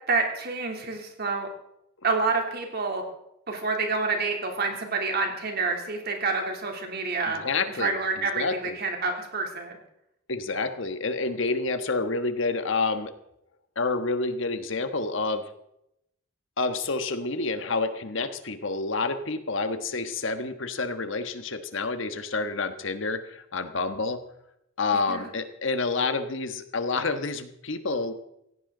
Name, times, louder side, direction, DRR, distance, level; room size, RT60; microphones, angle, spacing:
voice 1, 0.1-1.5 2.0-3.0 3.5-7.4 7.8-9.8 25.1-25.3, right 4 dB, 50° right, 2 dB, 3.1 m, -28 dB
voice 2, 7.4-7.9 8.4-8.8 10.3-13.1 13.7-15.5 16.6-24.2 24.8-28.1, left 3 dB, 65° left, 9 dB, 1.3 m, -28 dB
17.0 x 16.0 x 3.9 m, 0.80 s
head